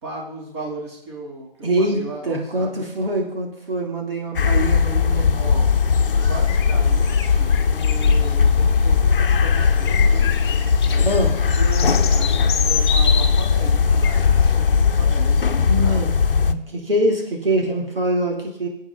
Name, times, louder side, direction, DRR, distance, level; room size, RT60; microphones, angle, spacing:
voice 1, 0.0-2.8 5.3-5.7 6.2-10.3 10.9-16.0, right 2 dB, 30° right, -2 dB, 3.4 m, -36 dB
voice 2, 1.6-5.4 11.0-11.3 15.5-18.7, right 1 dB, 70° right, 0 dB, 3.4 m, -24 dB
sound 1, 4.3-16.5, left 5 dB, 65° left, 0.8 m, -18 dB
sound 2, 5.9-14.5, left 7 dB, 25° left, 1.2 m, -31 dB
20.5 x 8.1 x 4.0 m, 0.79 s
figure-of-eight pair, 155°, 29 cm